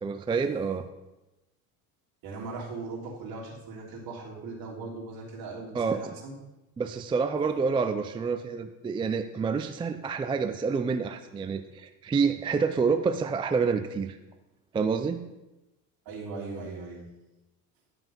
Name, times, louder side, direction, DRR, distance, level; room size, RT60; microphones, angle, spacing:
voice 1, 0.0-0.8 5.7-6.1 6.8-14.2 14.7-15.3, right 5 dB, 15° right, 8 dB, 0.3 m, -28 dB
voice 2, 2.2-6.4 16.0-17.0, right 3 dB, 55° right, -3 dB, 3.2 m, -39 dB
11.0 x 5.8 x 5.4 m, 1.0 s
supercardioid pair, 115°, 41 cm